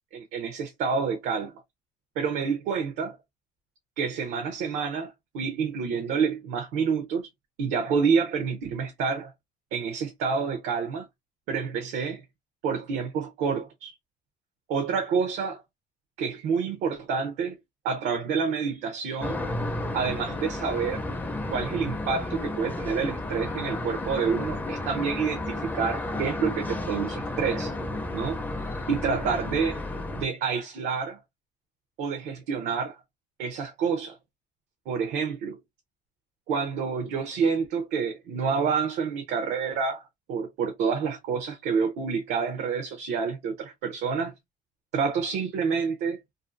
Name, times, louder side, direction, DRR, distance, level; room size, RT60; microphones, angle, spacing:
voice 1, 0.1-1.5 2.2-3.2 4.0-7.3 7.6-9.3 9.7-11.1 11.5-12.2 12.6-13.9 14.7-15.6 16.2-17.6 17.8-19.4 19.9-21.0 21.5-27.7 28.1-28.4 28.9-29.8 30.2-31.2 32.0-33.0 33.4-34.2 34.9-35.6 36.5-40.0 40.3-44.3 44.9-46.2, right 5 dB, 90° right, 0.7 m, -28 dB
sound 1, 19.2-30.3, left 2 dB, 10° left, 0.4 m, -32 dB
2.6 x 2.4 x 2.4 m
cardioid pair, 110°, 17 cm